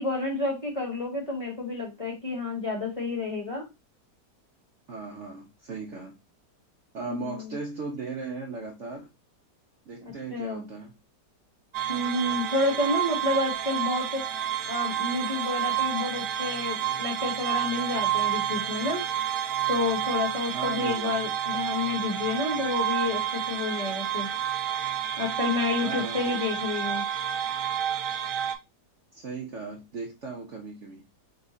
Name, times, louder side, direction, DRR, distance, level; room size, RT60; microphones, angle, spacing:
voice 1, 0.0-3.7 7.0-7.5 10.0-10.6 11.9-14.3 14.7-19.1 19.7-24.3 25.2-27.0, left 2 dB, 20° left, -2 dB, 1.3 m, -30 dB
voice 2, 4.9-6.1 6.9-9.1 9.9-10.9 20.5-21.1 25.8-26.4 29.1-31.0, right 4 dB, 55° right, 0 dB, 0.9 m, -37 dB
sound 1, 11.7-28.6, right 10 dB, 85° right, 1.2 m, -30 dB
4.1 x 2.4 x 4.0 m, 0.24 s
omnidirectional pair, 1.8 m